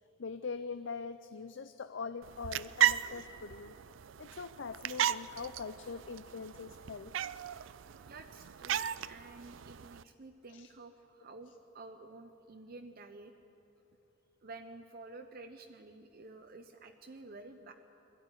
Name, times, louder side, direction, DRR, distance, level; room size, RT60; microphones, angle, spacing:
voice 1, 0.2-3.8 4.2-7.1 10.5-10.7, left 5 dB, 70° left, 11 dB, 0.6 m, -42 dB
sound 1, 2.2-10.0, right 10 dB, 90° right, 0.4 m, -36 dB
voice 2, 8.1-13.3 14.4-17.7, right 3 dB, 50° right, 5 dB, 0.9 m, -51 dB
21.5 x 14.0 x 9.7 m, 2.9 s
head